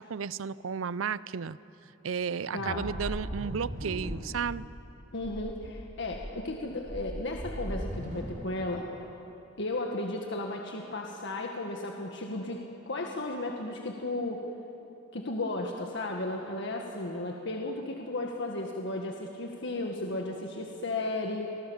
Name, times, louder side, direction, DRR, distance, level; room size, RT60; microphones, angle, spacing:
voice 1, 0.0-1.6 2.0-4.7, right 6 dB, 90° right, 19 dB, 0.6 m, -33 dB
voice 2, 2.5-2.9 5.1-8.9 9.6-14.5 15.1-21.7, left 2 dB, 65° left, 1 dB, 1.8 m, -34 dB
sound 1, 2.6-4.5 4.8-4.9 5.2-5.7 6.1-8.2, equal, 45° right, 4.9 m, -38 dB
29.5 x 24.0 x 7.3 m, 3.0 s
head